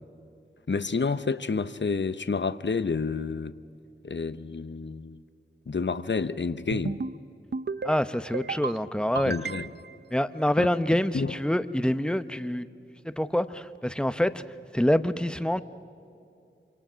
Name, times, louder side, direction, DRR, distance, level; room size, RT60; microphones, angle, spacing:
voice 1, 0.7-3.5 4.0-5.2 5.7-7.0 9.2-9.7 10.6-10.7 11.1-11.3, left 4 dB, 60° left, 13 dB, 0.8 m, -29 dB
sound 1, 6.7-7.2 7.5-8.0 8.3-8.8 9.1-9.9, right 4 dB, 55° right, 0.6 m, -33 dB
voice 2, 7.8-9.3 10.1-12.7 13.0-14.4 14.7-15.6, left 1 dB, 5° left, 12 dB, 0.9 m, -26 dB
27.0 x 26.0 x 6.3 m, 2.5 s
wide cardioid pair, 50°, 21 cm